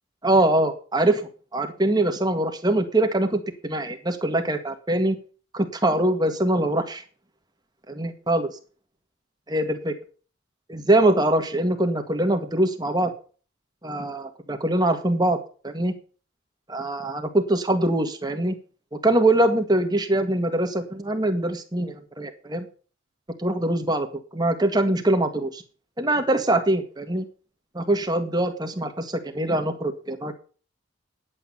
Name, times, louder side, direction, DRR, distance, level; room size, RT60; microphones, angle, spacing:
voice 1, 0.2-5.2 5.5-7.0 7.9-8.5 9.5-9.9 10.7-13.1 13.8-15.4 15.6-15.9 16.7-18.6 19.0-22.7 23.4-24.1 24.3-25.6 26.0-27.3 27.7-30.3, right 1 dB, 20° right, 6 dB, 1.7 m, -23 dB
11.0 x 8.5 x 5.7 m, 0.39 s
head